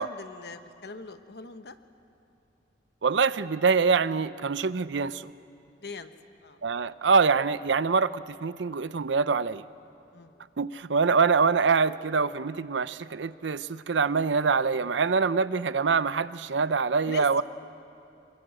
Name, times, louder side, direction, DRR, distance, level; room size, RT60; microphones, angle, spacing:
voice 1, 0.0-1.8 5.8-6.1 6.4-6.6 10.1-10.4 17.1-17.4, left 3 dB, 60° left, 9 dB, 1.1 m, -42 dB
voice 2, 3.0-5.3 6.6-9.6 10.6-17.4, right 5 dB, 85° right, 15 dB, 0.6 m, -25 dB
28.0 x 21.0 x 7.7 m, 2.7 s
head